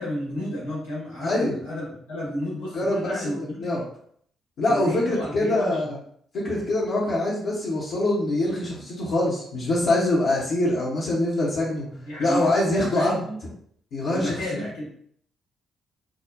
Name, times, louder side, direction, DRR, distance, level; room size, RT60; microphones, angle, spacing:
voice 1, 0.0-3.7 4.6-5.8 11.9-13.4 14.1-14.9, left 1 dB, 75° left, -6 dB, 1.4 m, -32 dB
voice 2, 1.2-1.5 2.7-3.1 3.4-3.8 4.6-6.0 6.3-11.9 12.2-13.2 13.9-14.6, left 1 dB, 55° left, -8 dB, 0.8 m, -24 dB
4.8 x 2.1 x 2.5 m, 0.64 s
figure-of-eight pair, 40°, 0 cm